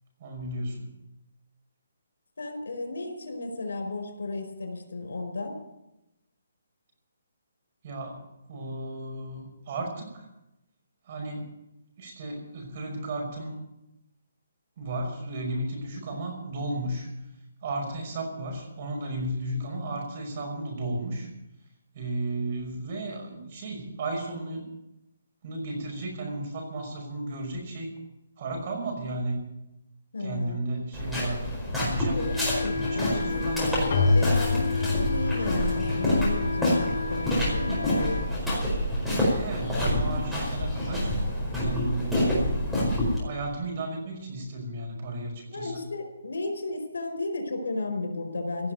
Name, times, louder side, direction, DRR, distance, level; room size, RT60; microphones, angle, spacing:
voice 1, 0.2-0.9 7.8-10.3 11.0-11.5 12.0-13.5 14.8-17.1 17.6-21.3 21.9-24.7 25.4-27.9 28.4-29.5 30.2-31.4 31.7-32.3 32.7-33.9 39.3-41.1 41.6-42.7 43.2-45.8, right 2 dB, 40° right, 2 dB, 5.6 m, -34 dB
voice 2, 2.4-5.6 30.1-30.6 32.1-38.2 45.5-48.7, left 2 dB, 85° left, 5 dB, 4.8 m, -34 dB
sound 1, 30.9-43.2, left 1 dB, ahead, 4.8 m, -27 dB
Wind instrument woodwind instrument, 32.1-38.3, left 4 dB, 65° left, 4.8 m, -32 dB
Keyboard (musical), 33.9-38.4, left 3 dB, 40° left, 6.1 m, -29 dB
16.5 x 7.4 x 9.2 m, 0.90 s
hypercardioid pair, 165°, 0 cm